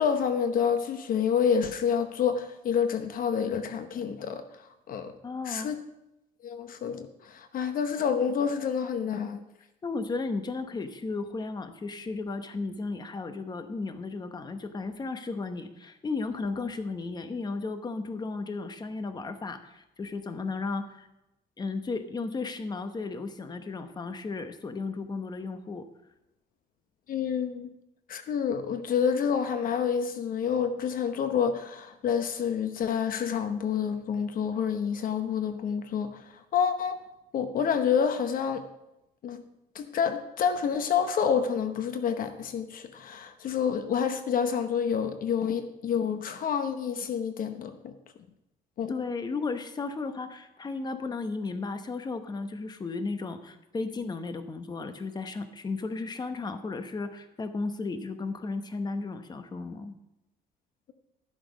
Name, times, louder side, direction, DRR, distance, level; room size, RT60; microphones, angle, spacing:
voice 1, 0.0-4.6 4.9-5.1 5.4-5.8 6.4-9.4 27.1-27.7 28.1-37.0 37.3-38.6 39.2-39.4 39.7-47.9 48.8-48.9, left 7 dB, 55° left, 9 dB, 0.9 m, -28 dB
voice 2, 5.2-5.7 9.8-21.1 21.6-25.8 48.9-59.9, left 3 dB, 25° left, 9 dB, 1.0 m, -34 dB
12.5 x 7.8 x 5.1 m, 0.90 s
cardioid pair, 110°, 17 cm